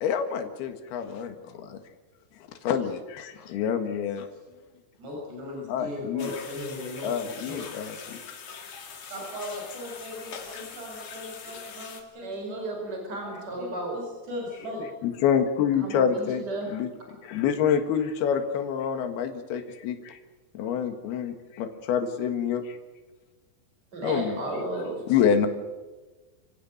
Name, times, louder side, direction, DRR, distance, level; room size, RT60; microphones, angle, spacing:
voice 1, 0.0-1.8 2.6-4.3 5.7-6.3 7.0-8.2 15.0-16.4 16.7-16.9 17.2-20.2 20.6-22.8 24.0-24.4 25.1-25.5, left 8 dB, 70° left, 7 dB, 3.6 m, -27 dB
voice 2, 5.0-7.6 9.1-12.6 13.2-13.3 13.6-14.9 24.0-24.1, left 1 dB, 80° right, -2 dB, 8.3 m, -38 dB
sound 1, 6.2-12.0, left 6 dB, 50° left, 3.6 m, -42 dB
voice 3, 12.2-14.0 15.8-16.7 23.9-25.0, right 2 dB, 25° right, 2 dB, 5.9 m, -33 dB
27.5 x 16.0 x 7.9 m, 1.2 s
omnidirectional pair, 4.7 m